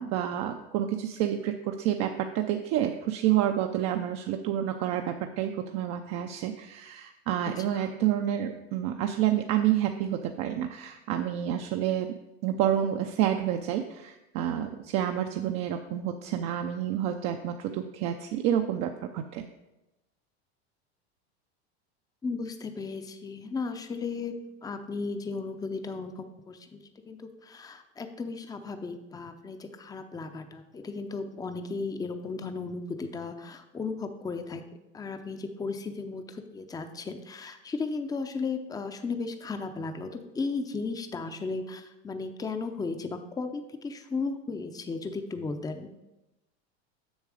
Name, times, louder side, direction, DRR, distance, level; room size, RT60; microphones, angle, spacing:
voice 1, 0.0-12.1 12.4-19.4, right 11 dB, 55° right, 5 dB, 0.6 m, -29 dB
voice 2, 22.2-34.6 34.9-45.9, left 4 dB, 10° left, 7 dB, 0.6 m, -35 dB
7.2 x 6.5 x 4.9 m, 0.98 s
supercardioid pair, 115°, 33 cm